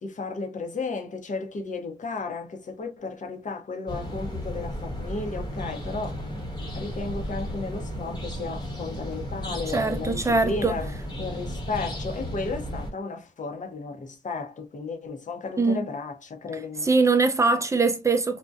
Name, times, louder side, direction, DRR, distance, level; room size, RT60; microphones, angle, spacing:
voice 1, 0.0-6.3 6.7-10.9 11.2-16.9, left 3 dB, 45° left, 0.7 m, -34 dB
sound 1, 3.9-12.9, equal, 25° left, 1.0 m, -34 dB
voice 2, 9.7-10.7 15.6-15.9 16.8-18.4, right 3 dB, 15° right, 0.5 m, -22 dB
2.6 x 2.2 x 2.2 m
cardioid pair, 60°, 17 cm